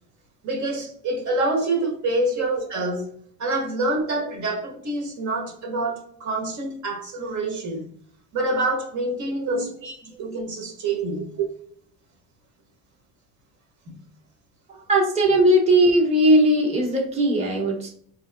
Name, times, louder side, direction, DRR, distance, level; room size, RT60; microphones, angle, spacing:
voice 1, 0.4-3.1 3.4-7.9 8.3-11.4 13.9-14.0, right 2 dB, 60° right, 1.3 m, -26 dB
voice 2, 14.9-17.9, right 1 dB, 20° right, 1.0 m, -19 dB
4.3 x 3.0 x 2.3 m
cardioid pair, 110°, 33 cm